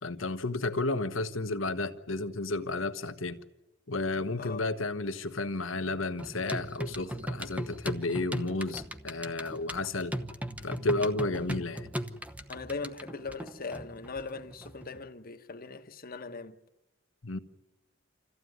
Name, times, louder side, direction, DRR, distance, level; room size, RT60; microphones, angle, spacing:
voice 1, 0.0-3.4 3.9-10.1 10.6-11.9 17.2-17.4, left 2 dB, 80° left, 1.3 m, -32 dB
sound 1, 6.2-15.0, right 1 dB, 5° right, 0.9 m, -38 dB
voice 2, 12.5-16.6, left 4 dB, 45° left, 1.2 m, -40 dB
26.5 x 15.0 x 9.5 m
head